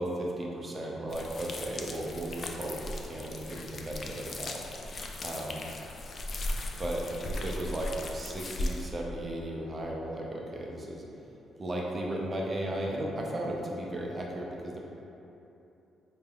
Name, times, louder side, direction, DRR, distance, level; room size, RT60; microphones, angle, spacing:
voice 1, 0.0-4.6 5.2-5.7 6.5-11.0 11.6-14.8, right 1 dB, 30° right, -2 dB, 0.6 m, -35 dB
sound 1, 1.1-8.9, left 1 dB, 45° left, 0.3 m, -37 dB
3.9 x 2.3 x 3.5 m, 3.0 s
cardioid pair, 90°, 0 cm